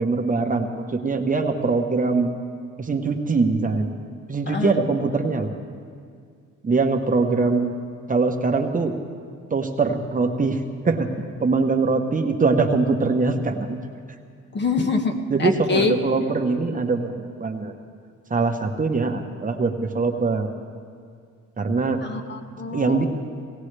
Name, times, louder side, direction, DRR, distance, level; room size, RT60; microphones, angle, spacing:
voice 1, 0.0-2.4 2.8-3.9 4.3-5.5 6.6-7.7 8.1-9.0 9.5-11.1 11.4-13.8 15.3-17.7 18.3-20.5 21.6-22.0 22.7-23.1, right 4 dB, 25° right, 4 dB, 1.0 m, -22 dB
voice 2, 14.5-15.9 22.0-23.1, left 4 dB, 35° left, 4 dB, 1.2 m, -25 dB
18.0 x 17.5 x 3.3 m, 2.2 s
cardioid pair, 90°, 30 cm